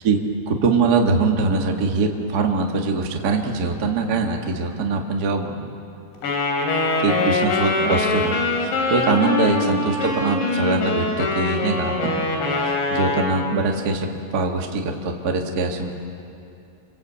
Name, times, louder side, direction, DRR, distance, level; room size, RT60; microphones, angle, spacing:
voice 1, 0.5-5.7 7.0-8.3 8.6-12.2 12.6-15.9, right 3 dB, 80° right, 2 dB, 0.8 m, -22 dB
Wind instrument woodwind instrument, 6.2-13.3, left 3 dB, 80° left, 5.3 m, -23 dB
26.5 x 22.5 x 8.3 m, 2.7 s
omnidirectional pair, 5.1 m